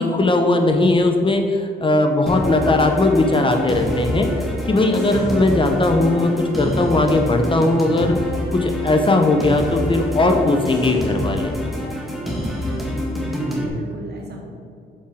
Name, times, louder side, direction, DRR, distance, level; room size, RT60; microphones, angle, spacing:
voice 1, 0.0-8.2 8.5-11.5, left 2 dB, 25° left, 5 dB, 0.7 m, -18 dB
sound 1, 2.3-13.7, left 1 dB, ahead, 1.6 m, -26 dB
voice 2, 13.1-14.5, right 1 dB, 55° right, 0 dB, 1.7 m, -34 dB
6.4 x 5.6 x 5.0 m, 2.4 s
cardioid pair, 90°, 20 cm